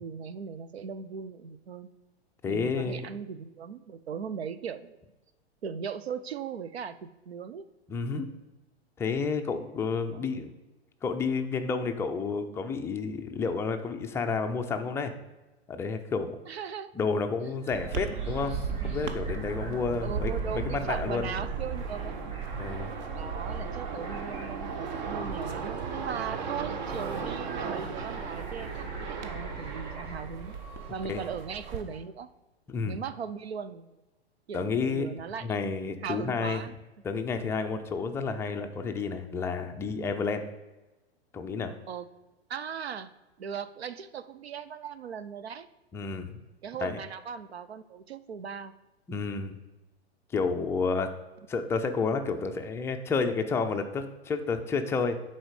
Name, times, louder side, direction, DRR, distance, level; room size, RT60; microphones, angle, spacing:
voice 1, 0.0-1.9 2.5-5.0 5.6-7.6 10.1-10.3 16.5-16.9 20.0-22.2 23.1-30.6 30.9-32.3 32.8-33.9 34.5-35.6 36.0-36.7 41.9-42.1 42.5-43.1 43.4-45.7 46.6-48.7, right 7 dB, 70° right, 13 dB, 0.7 m, -38 dB
voice 2, 2.4-3.1 7.9-8.3 9.0-10.5 11.0-15.1 15.7-16.3 17.0-21.3 22.6-22.9 30.0-30.1 31.1-31.2 32.7-33.0 34.5-35.1 35.4-36.6 37.0-40.4 41.3-41.7 45.9-46.4 46.8-47.0 49.1-49.6 50.3-51.1 51.5-55.2, left 4 dB, 10° left, 5 dB, 0.4 m, -30 dB
sound 1, 17.5-32.0, right 1 dB, 20° right, 3.0 m, -53 dB
sound 2, 17.7-31.8, right 5 dB, 45° right, 1.0 m, -35 dB
10.0 x 4.1 x 4.9 m, 1.1 s
figure-of-eight pair, 110°, 32 cm